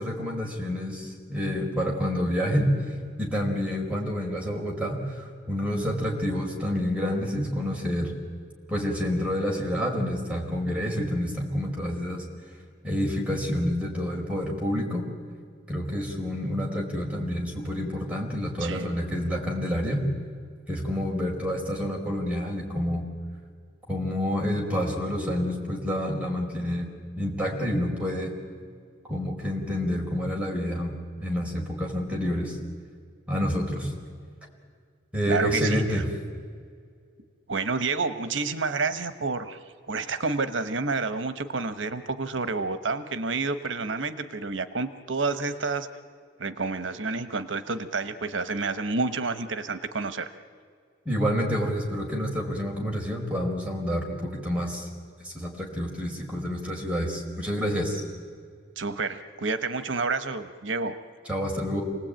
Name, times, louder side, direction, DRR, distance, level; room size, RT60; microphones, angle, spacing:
voice 1, 0.0-2.7 3.2-8.1 8.7-12.2 12.8-15.0 15.7-20.0 20.7-23.0 23.9-26.9 27.2-28.3 29.1-32.6 33.3-33.9 35.1-36.0 51.0-54.9 55.2-58.0 61.3-61.8, equal, 5° right, -1 dB, 4.5 m, -28 dB
voice 2, 18.6-18.9 35.3-36.0 37.5-39.6 39.9-45.9 46.4-50.3 58.8-60.9, right 4 dB, 85° right, 11 dB, 1.1 m, -29 dB
28.5 x 19.5 x 9.0 m, 2.1 s
head